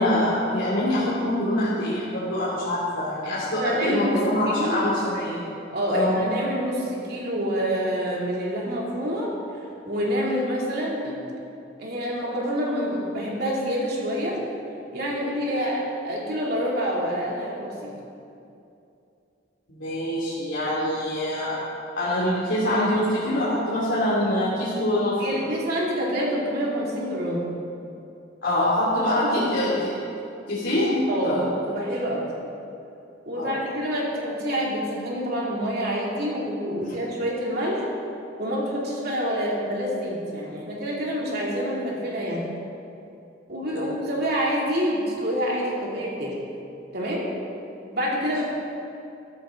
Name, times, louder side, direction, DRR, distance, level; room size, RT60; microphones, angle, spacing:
voice 1, 0.0-5.4 5.9-6.2 19.7-21.5 22.0-25.2 28.4-30.0 30.5-31.4 33.4-33.5 36.8-37.0 43.7-43.9, left 1 dB, 85° left, -10 dB, 2.9 m, -24 dB
voice 2, 3.6-4.9 5.7-9.3 9.8-11.2 11.8-14.4 14.9-17.9 25.2-27.5 29.2-29.7 31.1-31.4 31.7-32.3 33.3-37.9 38.4-42.4 43.5-46.4 46.9-47.3 47.9-48.4, equal, 60° right, -4 dB, 2.8 m, -27 dB
14.0 x 13.0 x 3.8 m, 2.6 s
head